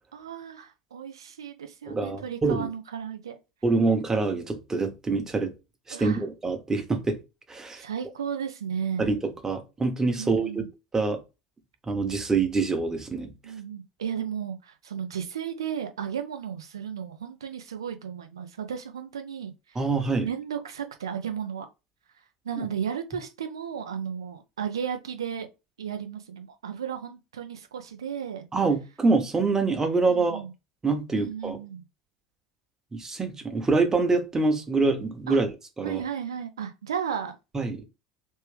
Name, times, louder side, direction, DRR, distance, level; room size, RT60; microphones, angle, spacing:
voice 1, 0.1-3.4 5.9-6.2 7.8-9.1 10.2-10.7 13.4-19.8 20.2-21.7 22.4-25.5 25.8-28.4 30.1-30.5 31.1-31.8 35.3-35.4 35.8-37.3, right 8 dB, 80° right, 0.6 m, -34 dB
voice 2, 1.9-2.7 3.6-5.5 5.9-7.2 7.5-7.8 9.0-10.6 10.9-11.2 11.9-13.3 19.7-20.3 22.6-22.7 28.5-30.4 30.8-31.6 32.9-35.5 35.8-36.0 37.5-37.8, right 3 dB, 20° right, 1.2 m, -25 dB
3.2 x 3.0 x 3.3 m
hypercardioid pair, 70°, 2 cm